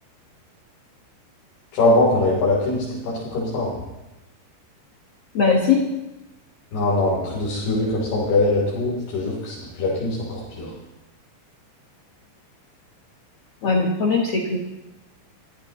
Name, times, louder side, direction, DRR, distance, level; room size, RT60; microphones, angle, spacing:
voice 1, 1.7-3.8 6.7-10.7, left 2 dB, 65° left, -6 dB, 5.5 m, -22 dB
voice 2, 5.3-5.8 13.6-14.6, left 4 dB, 85° left, 1 dB, 1.3 m, -19 dB
23.5 x 15.5 x 3.1 m, 0.98 s
omnidirectional pair, 5.0 m